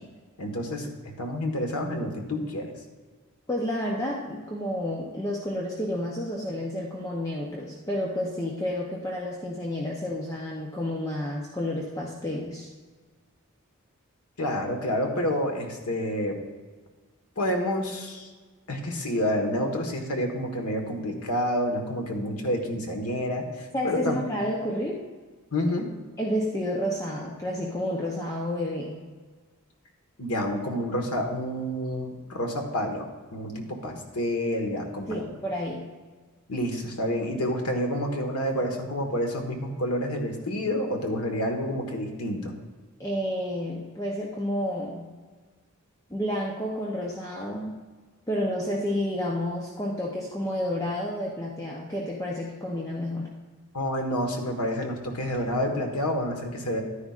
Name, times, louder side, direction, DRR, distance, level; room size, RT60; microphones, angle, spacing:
voice 1, 0.4-0.9 1.2-2.7 14.4-16.4 17.4-18.3 18.7-24.2 25.5-25.9 30.2-35.4 36.5-42.5 53.7-56.8, equal, 90° left, 3 dB, 1.5 m, -29 dB
voice 2, 3.5-12.7 23.7-25.0 26.2-29.0 35.1-35.9 43.0-45.1 46.1-47.7 48.3-53.3, left 1 dB, 15° left, -3 dB, 0.7 m, -30 dB
12.0 x 9.9 x 2.5 m, 1.4 s
head